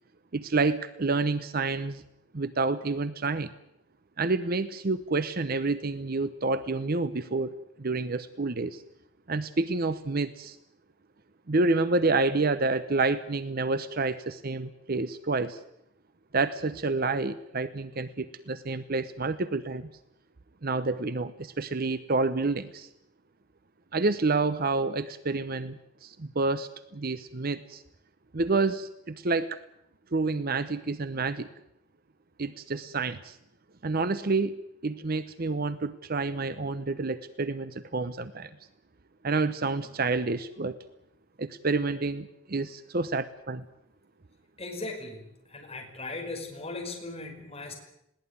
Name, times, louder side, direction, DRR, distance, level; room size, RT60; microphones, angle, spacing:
voice 1, 0.3-2.0 2.3-3.5 4.2-8.8 9.3-10.6 11.5-15.6 16.3-19.9 20.6-22.9 23.9-27.8 28.3-29.6 30.1-31.5 32.4-33.4 33.8-38.5 39.2-40.8 41.4-43.6, right 3 dB, 50° right, 13 dB, 0.8 m, -29 dB
voice 2, 44.6-45.2 45.5-47.7, left 2 dB, 30° left, 1 dB, 5.2 m, -38 dB
21.0 x 17.5 x 9.7 m, 0.79 s
head